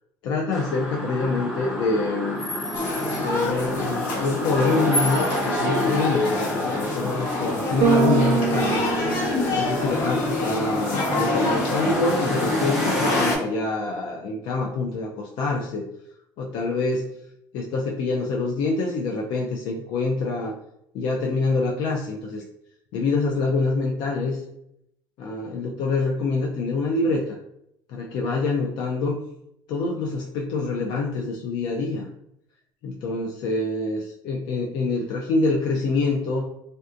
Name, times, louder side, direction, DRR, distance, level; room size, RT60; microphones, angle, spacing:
voice 1, 0.2-2.4 3.1-8.9 9.5-15.9 16.4-17.1 17.5-20.5 20.9-22.4 22.9-24.4 25.2-27.4 27.9-29.2 29.7-32.1 32.8-36.4, left 3 dB, 65° left, -1 dB, 0.4 m, -26 dB
sound 1, 0.5-13.4, equal, 5° right, 0.7 m, -30 dB
sound 2, 2.7-13.4, left 2 dB, 85° left, 1.1 m, -26 dB
Bass guitar, 7.8-10.1, right 5 dB, 45° right, 0.4 m, -24 dB
3.3 x 2.6 x 2.4 m, 0.77 s
cardioid pair, 145°, 8 cm